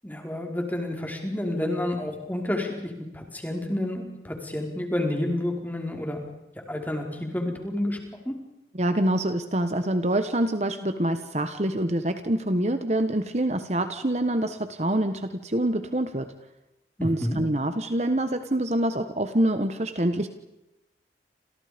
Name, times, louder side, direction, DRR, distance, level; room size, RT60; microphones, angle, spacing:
voice 1, 0.0-6.2 6.7-8.0 8.2-8.3 17.0-17.4, left 1 dB, 10° left, 2 dB, 4.9 m, -29 dB
voice 2, 8.7-16.3 17.0-20.3, right 1 dB, 40° right, 9 dB, 1.3 m, -26 dB
29.5 x 28.0 x 5.3 m, 0.94 s
head